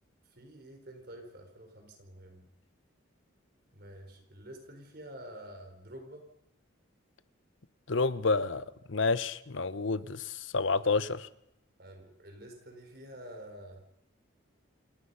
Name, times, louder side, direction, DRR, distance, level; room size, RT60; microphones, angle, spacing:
voice 1, 0.3-2.5 3.7-6.2 11.8-13.8, right 1 dB, 50° right, 4 dB, 4.6 m, -48 dB
voice 2, 7.9-11.3, left 3 dB, 70° left, 15 dB, 1.0 m, -29 dB
28.5 x 18.0 x 5.7 m, 0.78 s
head